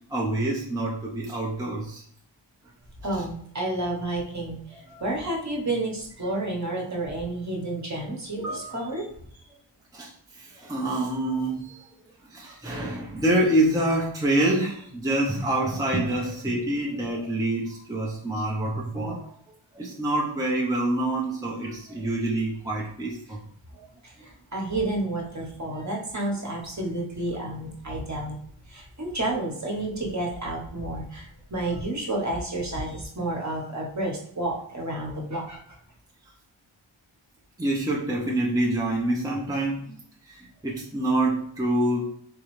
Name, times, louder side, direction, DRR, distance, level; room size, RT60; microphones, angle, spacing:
voice 1, 0.0-2.0 4.9-5.0 8.4-8.9 9.9-11.9 12.3-19.3 19.7-23.4 25.7-25.8 37.6-40.0 40.2-42.0, right 1 dB, 5° right, -3 dB, 0.7 m, -26 dB
voice 2, 3.0-9.1 24.0-28.4 28.7-35.6, right 2 dB, 35° right, -1 dB, 1.1 m, -30 dB
3.7 x 3.1 x 3.1 m, 0.64 s
wide cardioid pair, 70°, 50 cm